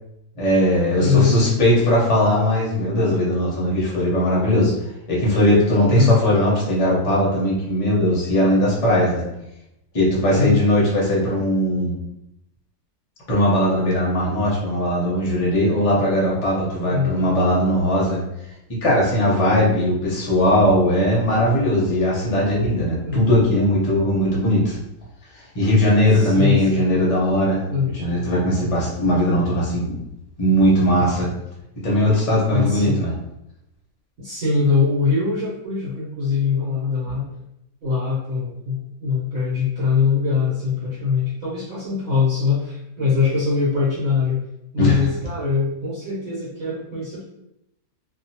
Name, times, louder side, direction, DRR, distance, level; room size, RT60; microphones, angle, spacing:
voice 1, 0.4-4.7 5.1-9.2 9.9-11.9 13.3-18.2 18.8-24.8 25.5-27.6 27.9-30.0 30.4-31.3 31.8-33.1 44.8-45.1, equal, 35° left, -5 dB, 0.6 m, -19 dB
voice 2, 1.0-1.4 5.8-6.2 10.3-10.6 16.8-17.2 23.0-23.2 26.1-26.8 27.7-27.9 32.5-33.0 34.2-37.3 37.8-44.4 44.7-47.2, left 5 dB, 55° right, -10 dB, 1.2 m, -22 dB
2.7 x 2.4 x 2.7 m, 0.84 s
omnidirectional pair, 1.8 m